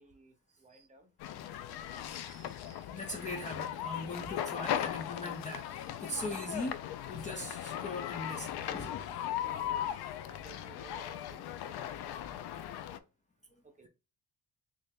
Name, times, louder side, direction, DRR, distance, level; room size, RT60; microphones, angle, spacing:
voice 1, 0.0-1.3 9.2-13.1 13.6-13.9, right 3 dB, 20° right, 0.8 m, -57 dB
sound 1, 1.2-13.0, left 11 dB, 85° left, 0.5 m, -38 dB
voice 2, 2.0-6.8 7.1-9.4, left 1 dB, 20° left, 0.5 m, -41 dB
3.3 x 2.8 x 3.5 m
cardioid pair, 130°, 37 cm